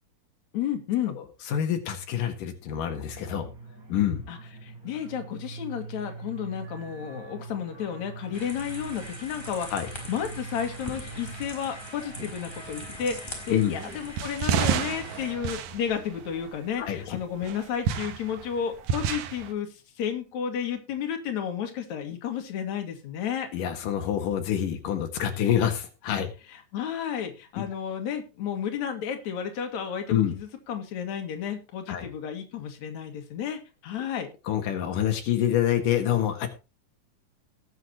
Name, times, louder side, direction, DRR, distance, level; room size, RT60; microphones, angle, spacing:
voice 1, 0.5-1.2 4.3-9.7 10.1-19.7 20.0-23.5 26.5-34.3, left 8 dB, 60° left, 5 dB, 3.3 m, -32 dB
voice 2, 1.5-3.5 3.9-4.2 9.7-9.9 13.5-13.8 16.8-17.2 23.5-26.3 27.6-27.7 30.1-30.3 31.9-32.1 34.5-36.5, left 10 dB, 90° left, 5 dB, 3.3 m, -26 dB
sound 1, 2.7-15.4, right 3 dB, 25° right, 4.8 m, -44 dB
sound 2, 8.3-15.3, left 1 dB, 10° left, 4.6 m, -42 dB
sound 3, 13.8-16.9 17.4-19.5, right 8 dB, 90° right, 2.8 m, -30 dB
19.0 x 8.2 x 2.9 m, 0.29 s
omnidirectional pair, 3.7 m